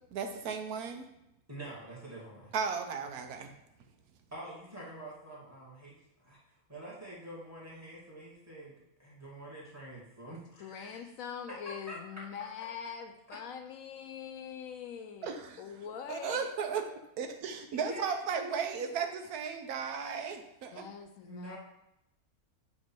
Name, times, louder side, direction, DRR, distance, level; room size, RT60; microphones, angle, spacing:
voice 1, 0.1-1.0 2.5-3.5 15.2-15.6 16.1-16.8 17.2-20.9, right 6 dB, 85° right, 6 dB, 1.2 m, -35 dB
voice 2, 1.5-2.5 4.3-6.4 6.7-11.1 11.5-12.3 13.3-13.4 17.7-18.5 18.8-18.9 21.2-21.6, right 1 dB, 10° right, -6 dB, 2.0 m, -46 dB
voice 3, 10.6-16.5 20.7-21.6, left 7 dB, 75° left, 6 dB, 1.0 m, -43 dB
7.7 x 3.1 x 4.4 m, 0.85 s
omnidirectional pair, 1.5 m